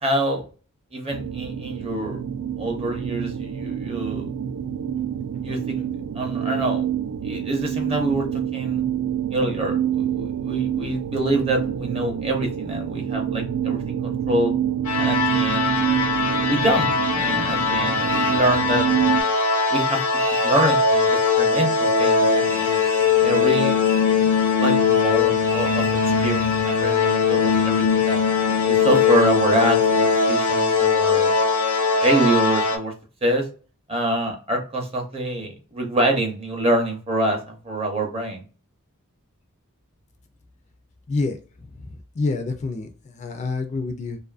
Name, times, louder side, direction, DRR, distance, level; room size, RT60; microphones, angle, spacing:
voice 1, 0.0-0.4 0.9-2.2 2.6-4.3 5.4-5.9 6.1-6.9 7.2-8.3 8.5-8.8 9.3-14.5 15.0-15.7 16.3-18.9 19.7-20.0 20.4-21.1 21.4-22.8 23.2-23.8 24.6-25.8 26.2-28.2 28.6-31.3 32.0-32.9 33.2-33.5 33.9-38.4, right 1 dB, 25° right, 3 dB, 0.6 m, -25 dB
sound 1, 1.1-19.2, right 9 dB, 80° right, 0.3 m, -27 dB
sound 2, 14.8-32.8, left 5 dB, 75° left, 0.6 m, -20 dB
sound 3, 18.0-18.4 20.1-20.7 22.4-24.1 25.4-26.8, right 1 dB, 65° right, 0.7 m, -37 dB
voice 2, 41.9-44.2, left 3 dB, 30° left, 5 dB, 0.3 m, -27 dB
2.5 x 2.4 x 2.3 m, 0.37 s
head